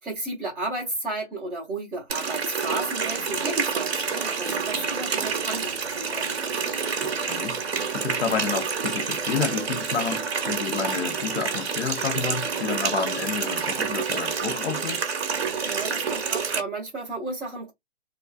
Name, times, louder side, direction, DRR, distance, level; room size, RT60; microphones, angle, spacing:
voice 1, 0.0-6.6 15.6-17.7, right 2 dB, ahead, 0.5 m, -33 dB
Water tap faucet, 2.1-16.6, right 5 dB, 60° right, 0.7 m, -28 dB
voice 2, 7.0-7.6 7.9-15.0, left 6 dB, 65° left, 0.9 m, -30 dB
2.4 x 2.4 x 2.3 m
figure-of-eight pair, 135°, 36 cm